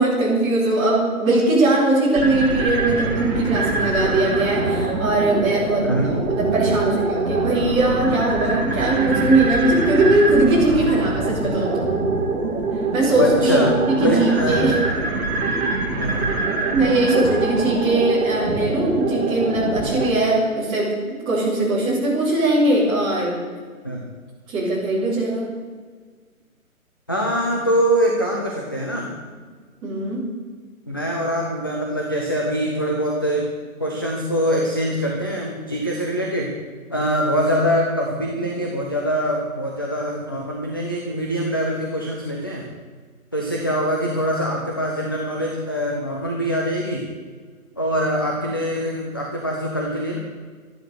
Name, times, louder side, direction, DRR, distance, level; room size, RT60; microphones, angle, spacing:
voice 1, 0.0-5.8 6.3-11.9 12.9-14.8 16.7-23.4 24.5-25.5 29.8-30.2, right 2 dB, 10° right, -8 dB, 3.6 m, -20 dB
sound 1, 2.1-20.1, right 3 dB, 45° right, 3.5 m, -24 dB
voice 2, 5.8-6.1 13.2-13.7 14.0-14.6 16.0-16.3 23.8-24.0 27.1-29.1 30.9-33.5 33.8-36.5 36.9-42.6 43.3-47.0 47.8-50.2, equal, 15° left, -1 dB, 0.6 m, -23 dB
12.5 x 11.5 x 6.7 m, 1.5 s
hypercardioid pair, 170°, 43 cm